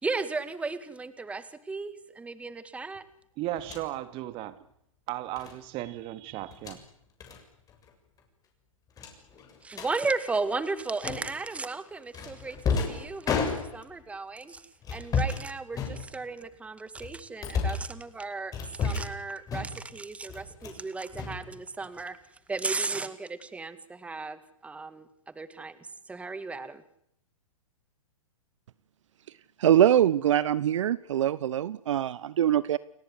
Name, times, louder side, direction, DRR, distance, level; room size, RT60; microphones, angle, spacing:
voice 1, 0.0-3.0 9.6-22.2 22.5-25.8 26.1-26.8, right 3 dB, 5° right, 1.9 m, -35 dB
voice 2, 3.4-4.6 5.1-6.8, right 15 dB, 35° right, 2.4 m, -35 dB
sound 1, 3.6-3.9 5.4-5.6 6.4-6.8 7.2-7.4 7.7-7.9 8.2-8.3 9.0-9.9 11.0-11.5 12.1-14.0 14.8-15.4 15.7-16.4 16.9-17.9 18.5-19.2 19.5-19.9 20.3-20.8 21.1-22.0, left 5 dB, 20° left, 7.2 m, -32 dB
voice 3, 29.6-32.8, right 10 dB, 65° right, 1.1 m, -23 dB
30.0 x 19.5 x 9.8 m
hypercardioid pair, 125°, 17 cm